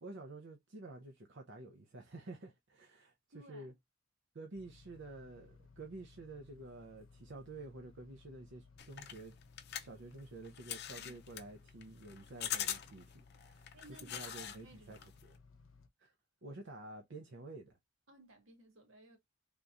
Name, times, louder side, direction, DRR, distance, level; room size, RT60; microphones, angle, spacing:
voice 1, 0.0-3.1 3.5-3.7 4.3-9.3 9.7-15.4 16.0-16.1 16.4-17.8, right 2 dB, 60° right, 0.6 m, -50 dB
voice 2, 3.3-3.7 10.9-11.2 13.7-15.1 18.1-19.2, right 2 dB, 80° right, 1.6 m, -59 dB
sound 1, 4.5-15.9, left 4 dB, 85° left, 0.8 m, -61 dB
sound 2, 8.8-14.6 14.9-15.4, left 10 dB, 55° left, 0.5 m, -42 dB
3.5 x 2.9 x 2.5 m
head